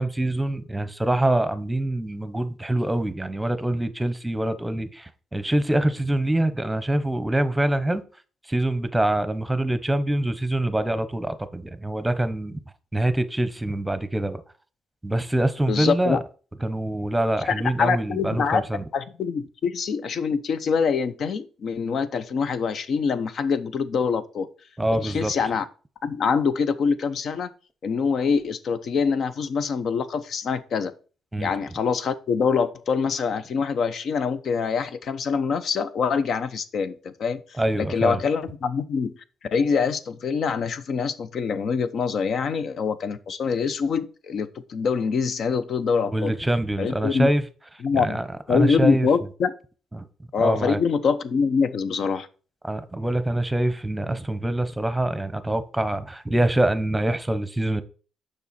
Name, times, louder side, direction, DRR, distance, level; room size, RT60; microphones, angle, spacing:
voice 1, 0.0-8.0 8.4-12.6 12.9-14.4 15.0-16.2 16.6-18.8 24.8-25.3 31.3-31.5 37.5-38.2 46.1-47.4 47.9-49.1 49.9-50.1 50.4-50.8 52.6-57.8, right 1 dB, 10° right, 0.9 m, -25 dB
voice 2, 15.7-16.2 17.8-18.6 18.9-24.5 25.0-25.6 26.0-27.5 27.8-30.9 31.4-37.4 37.8-39.1 39.5-46.3 46.8-47.3 47.8-48.2 48.5-49.5 50.3-52.3, left 5 dB, 60° left, 0.7 m, -24 dB
6.9 x 5.3 x 4.2 m
cardioid pair, 90°, 0 cm